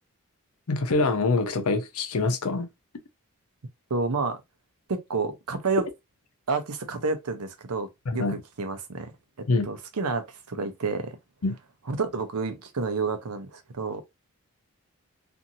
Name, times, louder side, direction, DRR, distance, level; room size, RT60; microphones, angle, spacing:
voice 1, 0.7-2.7 8.1-8.4 9.5-9.7 11.4-11.5, left 3 dB, 80° left, 0.6 m, -25 dB
voice 2, 3.9-4.4 4.9-5.8 6.5-7.9 8.1-9.1 9.7-11.1 11.9-14.0, right 4 dB, 85° right, 0.7 m, -29 dB
2.8 x 2.6 x 2.6 m
head